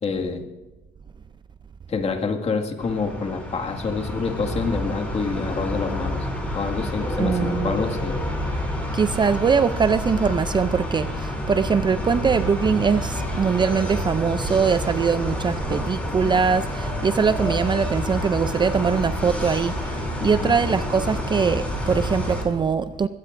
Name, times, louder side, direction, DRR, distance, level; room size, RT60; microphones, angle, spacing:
voice 1, 0.0-0.5 1.9-6.3 6.5-8.2 20.2-20.6, left 4 dB, 35° left, 3 dB, 2.0 m, -27 dB
sound 1, 2.8-22.4, left 1 dB, 10° left, 5.7 m, -28 dB
voice 2, 7.2-7.7 8.9-23.1, right 6 dB, 25° right, 12 dB, 0.5 m, -22 dB
23.0 x 17.0 x 2.6 m, 1.1 s
cardioid pair, 110°, 17 cm